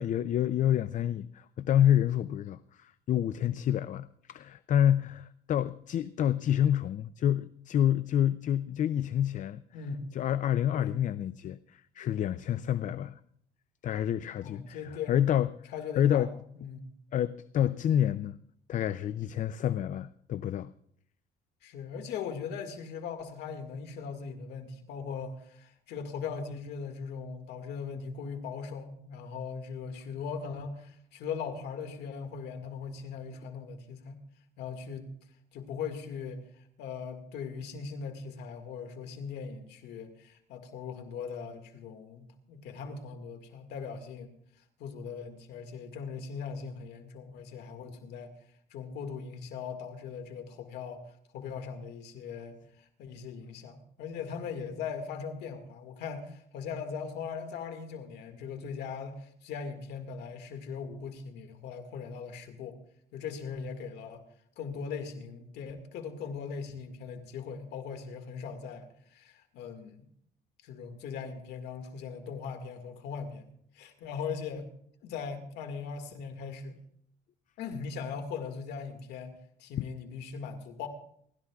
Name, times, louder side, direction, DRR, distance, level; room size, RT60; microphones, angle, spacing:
voice 1, 0.0-9.6 10.1-13.2 13.8-15.5 16.0-16.3 17.1-18.4 18.7-20.7 79.8-79.9, left 10 dB, 50° left, 14 dB, 0.5 m, -28 dB
voice 2, 14.4-15.2 15.7-16.3 16.6-16.9 21.6-34.2 34.6-35.2 35.5-44.3 44.8-48.3 48.7-51.0 51.3-62.8 63.1-64.2 64.6-70.1 70.6-74.7 75.0-76.8 77.6-80.9, left 6 dB, 80° left, 6 dB, 1.9 m, -39 dB
29.5 x 12.5 x 2.4 m, 0.66 s
cardioid pair, 110°, 17 cm